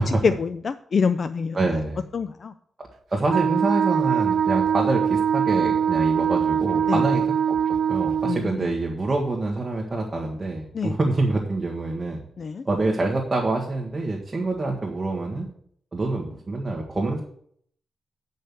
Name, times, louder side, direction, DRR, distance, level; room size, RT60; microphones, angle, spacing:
voice 1, 0.0-1.6 2.1-2.5 6.9-7.0 8.2-8.8 10.7-11.0 12.4-12.6, left 5 dB, 50° left, 0.4 m, -26 dB
voice 2, 1.5-2.0 2.8-7.6 7.9-12.2 12.6-15.5 15.9-17.2, right 2 dB, 25° right, 1.5 m, -26 dB
Wind instrument woodwind instrument, 3.3-8.4, right 8 dB, 70° right, 0.4 m, -22 dB
8.8 x 5.4 x 6.8 m
wide cardioid pair, 140°, 0 cm